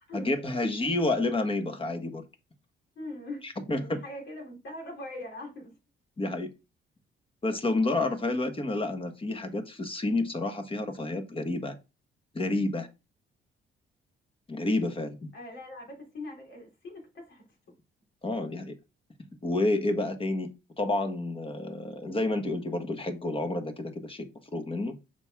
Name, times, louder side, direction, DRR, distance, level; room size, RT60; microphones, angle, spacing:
voice 1, 0.1-2.2 3.4-4.0 6.2-6.5 7.4-11.7 12.3-12.9 14.5-15.3 18.2-18.7 19.4-20.5 20.8-24.2 24.5-25.0, left 2 dB, 25° left, 1.3 m, -29 dB
voice 2, 2.9-5.7 15.3-17.5, left 1 dB, 70° left, 3.3 m, -41 dB
6.6 x 4.8 x 3.6 m
cardioid pair, 90°, 20 cm